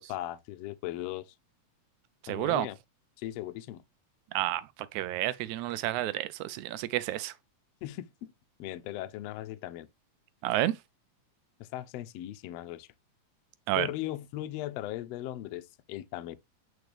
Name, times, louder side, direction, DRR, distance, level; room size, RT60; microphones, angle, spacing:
voice 1, 0.0-1.3 2.3-2.8 3.2-3.8 7.8-8.3 8.6-9.9 11.6-12.9 13.8-16.4, left 14 dB, 80° left, 1.5 m, -38 dB
voice 2, 2.2-2.7 4.3-4.7 4.9-7.3 10.4-10.8 13.7-13.9, right 15 dB, 85° right, 1.9 m, -30 dB
8.0 x 4.6 x 3.3 m
omnidirectional pair, 3.4 m